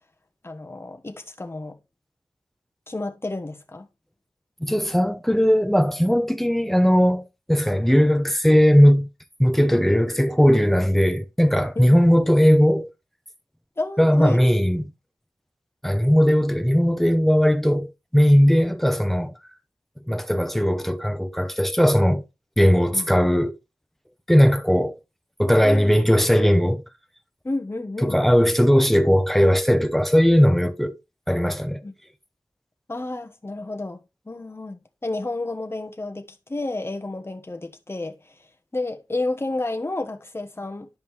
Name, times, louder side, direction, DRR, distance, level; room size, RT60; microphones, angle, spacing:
voice 1, 0.4-1.8 2.9-3.9 11.7-12.0 13.8-14.4 22.9-23.1 25.6-26.0 27.4-28.2 31.8-31.9 32.9-38.1 38.7-40.9, left 2 dB, 35° left, 1.2 m, -31 dB
voice 2, 4.6-7.2 7.5-9.1 9.4-12.9 14.0-14.8 15.8-19.3 20.1-22.2 22.6-23.5 24.3-25.0 25.4-26.8 28.0-31.0 31.3-31.8, equal, 5° left, 0.8 m, -18 dB
10.5 x 5.2 x 3.2 m
wide cardioid pair, 70°, 7 cm